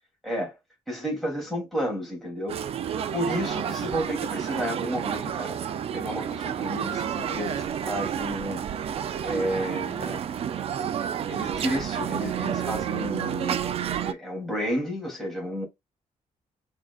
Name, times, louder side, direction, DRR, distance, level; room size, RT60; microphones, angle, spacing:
voice 1, 0.2-0.6 0.9-2.6 3.1-5.6 5.9-8.6 9.2-10.2 11.3-13.6 14.0-15.7, equal, ahead, 2.8 m, -31 dB
sound 1, 2.5-14.1, right 9 dB, 50° right, 0.4 m, -30 dB
4.8 x 3.7 x 2.4 m
cardioid pair, 145°, 13 cm